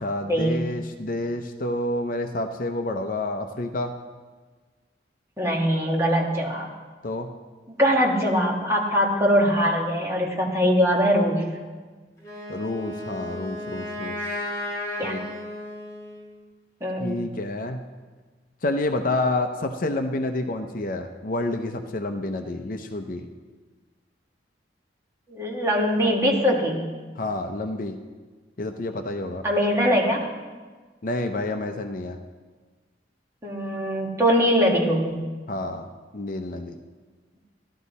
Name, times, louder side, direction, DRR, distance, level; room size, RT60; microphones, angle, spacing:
voice 1, 0.0-3.9 7.0-7.3 12.5-14.5 15.0-15.3 17.0-17.8 18.6-23.3 27.2-28.0 28.6-29.4 31.0-32.2 35.5-35.9 36.1-36.8, left 2 dB, 50° left, 6 dB, 0.6 m, -29 dB
voice 2, 5.4-6.7 7.8-11.4 15.0-15.2 16.8-17.2 25.3-26.8 29.4-30.3 33.4-35.2, equal, 15° right, -2 dB, 1.7 m, -22 dB
Wind instrument woodwind instrument, 12.2-16.3, left 1 dB, 20° left, 3.4 m, -34 dB
13.0 x 12.0 x 4.2 m, 1.4 s
head